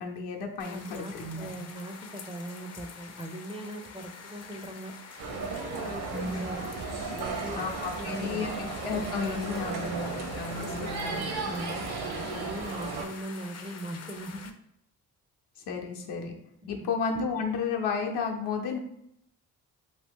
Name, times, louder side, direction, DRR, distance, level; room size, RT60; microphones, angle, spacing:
voice 1, 0.0-1.5 6.1-6.6 7.5-11.3 15.6-16.3 16.7-18.8, left 5 dB, 70° left, 2 dB, 0.8 m, -33 dB
sound 1, 0.6-14.5, left 5 dB, 40° left, 0.5 m, -46 dB
voice 2, 0.7-4.9 5.4-6.7 7.1-8.5 9.1-9.6 10.5-11.9 12.3-14.5 16.6-16.9, right 1 dB, 15° right, 4 dB, 0.4 m, -40 dB
sound 2, 5.2-13.1, right 4 dB, 60° right, 0.7 m, -35 dB
2.8 x 2.4 x 3.6 m, 0.76 s
supercardioid pair, 55°, 42 cm